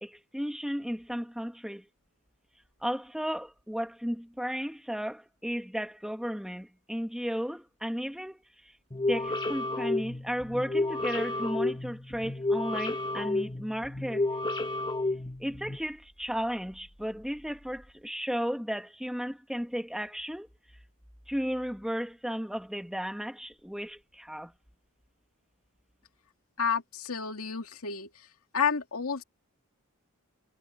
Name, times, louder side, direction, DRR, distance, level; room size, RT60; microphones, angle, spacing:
voice 1, 0.0-1.9 2.8-8.4 9.1-14.3 15.4-20.5 21.3-24.5, equal, ahead, 2.3 m, -34 dB
sound 1, 8.9-15.8, left 2 dB, 20° left, 2.2 m, -31 dB
voice 2, 26.6-28.1 28.5-29.2, left 6 dB, 80° left, 2.3 m, -30 dB
head